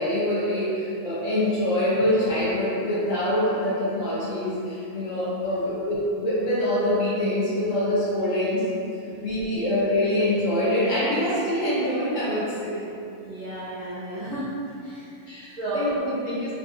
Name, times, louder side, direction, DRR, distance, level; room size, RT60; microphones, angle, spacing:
voice 1, 0.0-8.6 9.2-12.8 15.3-16.5, left 1 dB, 60° left, -8 dB, 1.1 m, -25 dB
voice 2, 13.2-14.5 14.8-15.2 15.6-16.0, right 1 dB, 55° right, -12 dB, 0.5 m, -33 dB
3.3 x 2.7 x 2.4 m, 2.6 s
omnidirectional pair, 1.6 m